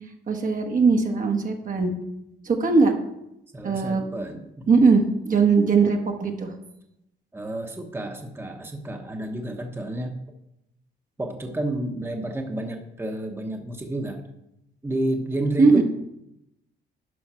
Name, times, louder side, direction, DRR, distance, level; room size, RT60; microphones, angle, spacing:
voice 1, 0.3-1.9 2.4-2.9 3.6-4.0 4.7-6.5 15.6-15.8, right 4 dB, 40° right, 3 dB, 1.2 m, -20 dB
voice 2, 3.5-4.7 7.3-10.1 11.2-14.2 14.8-15.8, right 1 dB, 10° right, 3 dB, 1.1 m, -30 dB
11.0 x 5.6 x 4.4 m, 0.86 s
cardioid pair, 90°, 20 cm